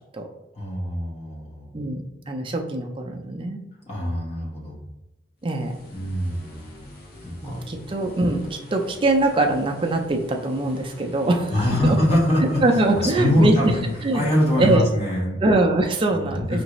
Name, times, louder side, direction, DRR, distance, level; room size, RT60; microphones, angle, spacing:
voice 1, 0.5-1.7 3.8-4.8 5.9-6.6 7.2-7.6 11.5-12.6 13.0-15.4 16.1-16.6, left 1 dB, 35° left, -4 dB, 1.1 m, -23 dB
voice 2, 1.7-3.6 5.4-5.8 7.4-12.0 12.4-13.6 14.0-14.3 14.6-14.9 15.4-16.6, right 2 dB, 25° right, 3 dB, 0.4 m, -23 dB
sound 1, 5.4-14.8, left 1 dB, 50° left, 0.8 m, -44 dB
4.7 x 2.5 x 3.0 m, 0.94 s
head